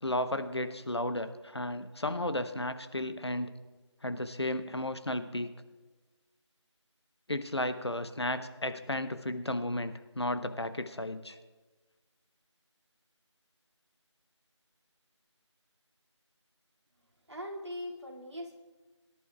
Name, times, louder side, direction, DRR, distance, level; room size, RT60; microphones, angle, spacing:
voice 1, 0.0-3.5 4.0-5.5 7.3-11.4, left 1 dB, 60° left, 10 dB, 0.9 m, -34 dB
voice 2, 17.3-18.6, left 1 dB, 65° right, -2 dB, 2.3 m, -40 dB
23.0 x 11.5 x 2.3 m, 1.3 s
figure-of-eight pair, 175°, 16 cm